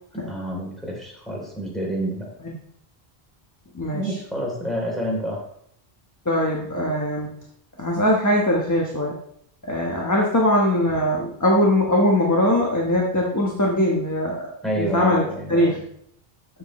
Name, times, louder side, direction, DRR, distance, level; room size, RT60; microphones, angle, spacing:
voice 1, 0.1-2.3 3.9-5.4 14.6-15.8, right 1 dB, ahead, -3 dB, 3.3 m, -28 dB
voice 2, 3.7-4.2 6.2-7.3 7.8-9.1 9.6-15.8, left 1 dB, 15° left, -2 dB, 1.2 m, -21 dB
13.0 x 7.3 x 3.2 m, 0.71 s
omnidirectional pair, 1.1 m